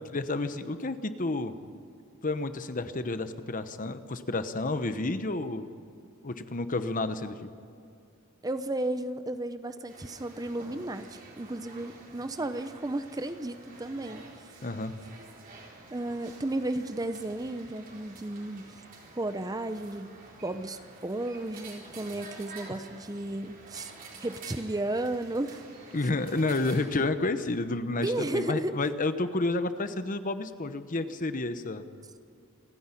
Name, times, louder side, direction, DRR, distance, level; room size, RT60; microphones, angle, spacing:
voice 1, 0.1-1.5 2.2-5.7 6.2-7.4 14.6-14.9 25.9-31.8, left 2 dB, 40° left, 11 dB, 1.0 m, -30 dB
voice 2, 8.4-14.5 15.9-18.8 19.2-20.2 20.4-23.9 24.2-25.6 28.0-28.8, right 1 dB, 15° right, 10 dB, 0.6 m, -33 dB
sound 1, 9.9-26.9, right 3 dB, 40° right, 3.9 m, -49 dB
28.0 x 10.0 x 9.9 m, 2.5 s
head